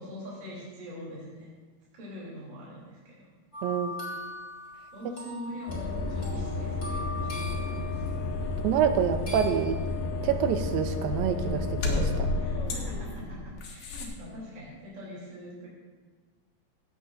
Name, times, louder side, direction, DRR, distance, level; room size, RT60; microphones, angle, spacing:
voice 1, 0.0-1.5 1.9-3.3 4.9-8.1 12.3-15.7, equal, 30° right, -7 dB, 3.6 m, -43 dB
sound 1, 3.5-8.3 9.3-9.8, left 1 dB, 25° left, 3.7 m, -41 dB
voice 2, 3.6-4.1 8.6-9.8 10.2-12.3, right 8 dB, 80° right, 8 dB, 2.3 m, -27 dB
sound 2, 5.7-14.1, left 3 dB, 85° left, 3.5 m, -31 dB
17.0 x 15.5 x 2.6 m, 1.4 s
omnidirectional pair, 4.3 m